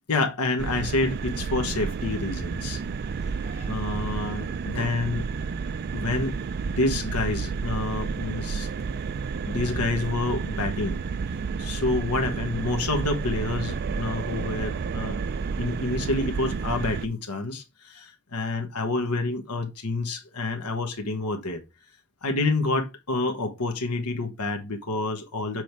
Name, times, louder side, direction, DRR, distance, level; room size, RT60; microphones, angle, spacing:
voice 1, 0.1-2.8 3.4-5.3 5.9-6.3 6.6-8.7 9.5-11.0 11.6-15.2 15.6-21.6 22.2-25.6, left 2 dB, 85° left, 1.2 m, -28 dB
sound 1, 0.6-17.1, right 5 dB, 45° right, 0.4 m, -31 dB
6.3 x 4.6 x 3.3 m
head